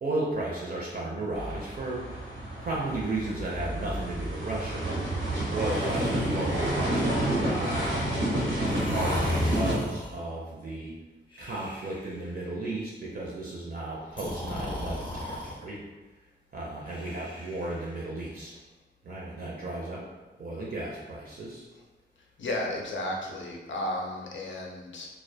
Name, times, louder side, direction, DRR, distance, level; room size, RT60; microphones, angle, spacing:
voice 1, 0.0-2.2 2.6-5.0 5.5-8.0 8.6-10.9 11.4-15.8 16.5-18.5 19.0-20.1 20.4-21.6, right 2 dB, 50° right, -4 dB, 0.4 m, -34 dB
sound 1, 1.3-9.7, right 1 dB, 90° right, 0.7 m, -29 dB
Breathing, 5.7-7.2 8.6-10.3 11.3-12.3 14.1-15.6 16.9-18.1, left 2 dB, 25° left, 0.5 m, -36 dB
voice 2, 22.4-25.1, left 1 dB, 75° left, -1 dB, 0.5 m, -33 dB
2.3 x 2.1 x 2.6 m, 1.1 s
wide cardioid pair, 135°, 19 cm